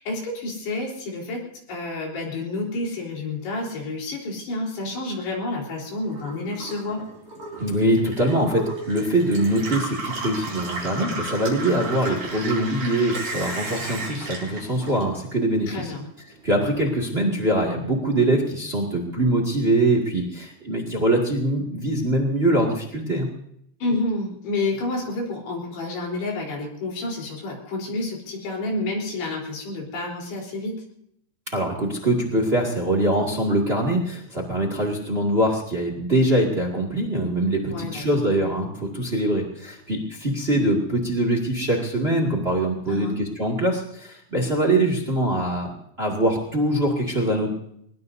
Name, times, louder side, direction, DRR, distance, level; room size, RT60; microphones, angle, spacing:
voice 1, 0.0-1.4 1.7-7.0 15.7-16.1 23.8-30.7 37.7-38.0 42.9-43.2, left 2 dB, 60° left, -2 dB, 5.9 m, -29 dB
Gurgling / Water tap faucet / Sink (filling or washing), 6.0-15.5 15.9-16.7, right 3 dB, 45° right, 5.9 m, -34 dB
voice 2, 7.6-15.9 16.4-23.3 31.5-45.7 46.0-47.5, right 1 dB, 80° right, 1 dB, 0.5 m, -23 dB
23.5 x 21.5 x 2.7 m, 0.73 s
omnidirectional pair, 5.4 m